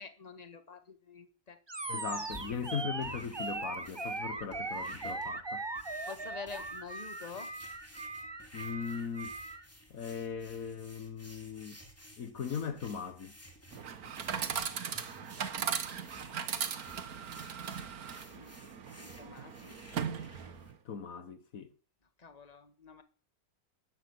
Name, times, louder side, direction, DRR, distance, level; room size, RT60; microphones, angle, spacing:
voice 1, 0.0-1.6 2.2-2.3 6.1-7.5 18.3-18.6 19.0-19.8 22.2-23.0, left 5 dB, 25° left, 1.7 m, -47 dB
Animal, 1.7-9.6, right 3 dB, 20° right, 1.1 m, -39 dB
voice 2, 1.9-5.6 8.5-9.3 9.9-11.8 12.2-13.3 20.8-21.7, left 6 dB, 65° left, 1.6 m, -39 dB
sound 1, 2.1-20.7, equal, 10° left, 3.3 m, -55 dB
Chatter / Coin (dropping), 13.7-20.7, right 7 dB, 80° right, 1.8 m, -38 dB
13.0 x 11.0 x 9.5 m
omnidirectional pair, 1.6 m